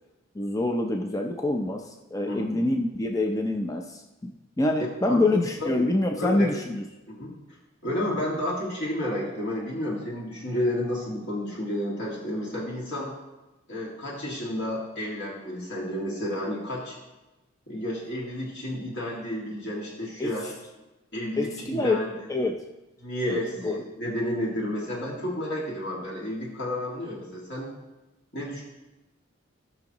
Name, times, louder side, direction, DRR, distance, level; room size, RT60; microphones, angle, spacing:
voice 1, 0.3-6.8 20.2-20.3 21.4-22.0 22.3-22.6 23.3-23.8, left 2 dB, 15° left, 3 dB, 0.5 m, -26 dB
voice 2, 5.0-5.8 6.2-6.5 7.1-7.3 7.8-13.1 13.7-17.0 17.7-20.5 21.1-22.1 23.0-27.7 28.3-28.6, left 1 dB, 55° left, -4 dB, 2.0 m, -31 dB
17.0 x 6.1 x 2.9 m, 1.1 s
head